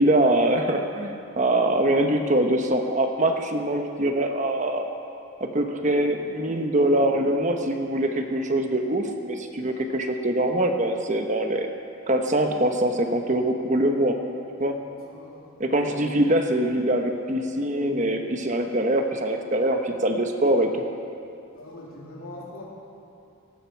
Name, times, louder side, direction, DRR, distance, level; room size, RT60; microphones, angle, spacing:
voice 1, 0.0-4.9 5.4-11.7 12.1-14.2 14.6-14.8 15.6-20.8, right 1 dB, 35° right, 5 dB, 1.0 m, -23 dB
voice 2, 14.6-15.5 21.5-22.6, left 2 dB, 85° left, -3 dB, 3.2 m, -43 dB
18.0 x 15.0 x 4.6 m, 2.6 s
head